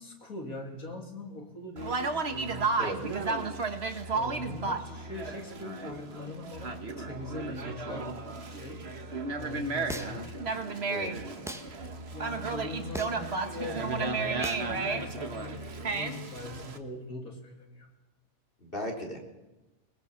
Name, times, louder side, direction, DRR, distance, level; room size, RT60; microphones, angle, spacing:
voice 1, 0.0-3.5 4.1-8.1 8.5-8.8 9.4-10.3 11.4-17.9, left 2 dB, 80° left, 3 dB, 3.6 m, -42 dB
Conversation, 1.8-16.8, right 4 dB, 50° right, 1.7 m, -33 dB
sound 1, 9.9-10.3 11.5-11.7 12.9-13.3 14.4-14.7, equal, ahead, 1.4 m, -38 dB
voice 2, 18.6-19.2, equal, 40° left, 1 dB, 3.9 m, -36 dB
22.0 x 20.0 x 7.3 m, 1.0 s
omnidirectional pair, 1.5 m